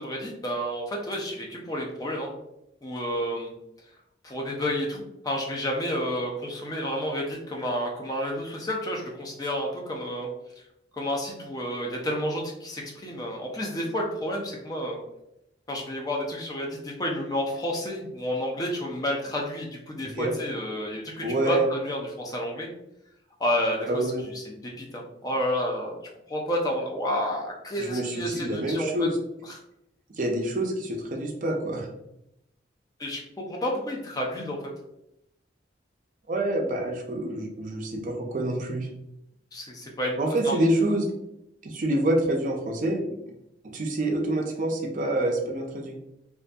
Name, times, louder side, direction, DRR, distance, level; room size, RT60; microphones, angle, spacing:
voice 1, 0.0-2.3 2.8-3.5 4.2-10.3 10.9-15.0 15.7-22.7 23.4-24.0 24.3-25.9 26.3-29.1 29.5-29.6 33.0-34.6 39.5-40.6, equal, 20° left, -1 dB, 0.4 m, -30 dB
voice 2, 20.0-20.3 21.2-21.7 23.9-24.2 27.8-29.2 30.2-31.9 36.3-38.9 40.2-41.1 41.6-43.4 43.7-46.0, right 1 dB, 45° right, 2 dB, 0.4 m, -27 dB
2.6 x 2.5 x 2.2 m, 0.83 s
head